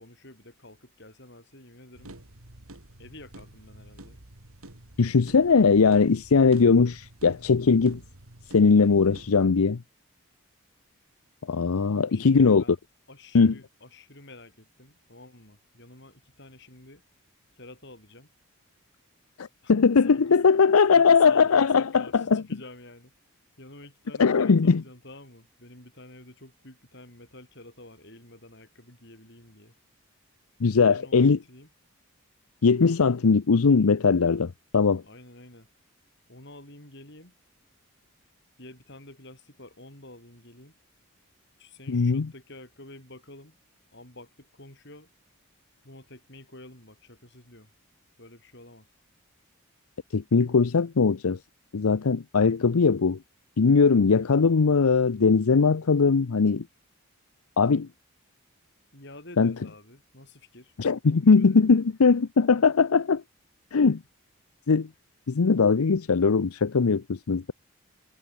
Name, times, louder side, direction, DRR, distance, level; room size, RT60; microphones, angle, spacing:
voice 1, 0.0-2.2 3.0-4.2 11.9-12.8 13.1-17.0 17.5-18.3 19.6-19.8 20.1-20.4 20.9-23.1 23.6-29.7 30.9-31.7 35.0-35.7 36.3-37.3 38.6-40.8 41.6-43.6 43.9-45.1 45.8-47.7 48.2-48.9 58.9-60.7 61.1-61.6, left 2 dB, 50° left, 7.2 m, -49 dB
sound 1, 1.9-9.5, right 1 dB, 75° right, 2.9 m, -49 dB
voice 2, 5.0-8.0 8.5-9.8 11.5-12.6 13.3-13.5 19.4-22.4 24.2-24.8 30.6-31.4 32.6-35.0 41.9-42.3 50.1-51.4 51.7-53.2 53.6-56.6 57.6-57.9 59.4-59.5 60.8-63.2 63.7-64.0 64.7-64.9 65.3-67.5, left 5 dB, 85° left, 0.6 m, -20 dB
head